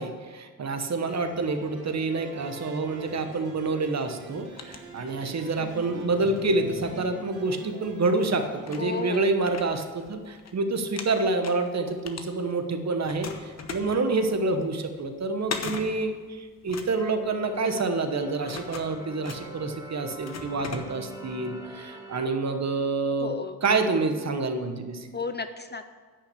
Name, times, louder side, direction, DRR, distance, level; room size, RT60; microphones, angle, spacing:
voice 1, 0.0-25.1, right 3 dB, 45° right, 7 dB, 1.1 m, -28 dB
sound 1, 1.1-9.1, right 3 dB, 75° right, 3.2 m, -43 dB
sound 2, 4.2-5.5 6.0-7.6 8.2-8.3 8.6-10.5 10.8-12.7 13.0-21.3, left 5 dB, 45° left, 1.1 m, -41 dB
voice 2, 8.8-9.3 23.2-23.6 25.1-25.9, left 4 dB, 30° left, 10 dB, 0.5 m, -33 dB
sound 3, 16.7-22.3, right 1 dB, 10° right, 1.9 m, -44 dB
10.0 x 5.7 x 8.3 m, 1.5 s
cardioid pair, 105°, 36 cm